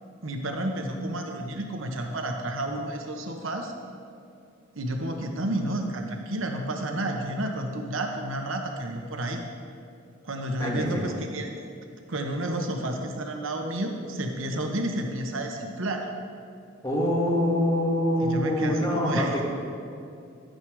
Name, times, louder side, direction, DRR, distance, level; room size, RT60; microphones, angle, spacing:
voice 1, 0.2-3.7 4.7-9.5 10.2-11.5 12.1-16.1 18.2-19.4, right 1 dB, 75° right, 3 dB, 1.1 m, -31 dB
voice 2, 10.6-11.2 16.8-19.4, left 1 dB, 20° left, -5 dB, 2.3 m, -25 dB
12.5 x 9.3 x 4.7 m, 2.5 s
head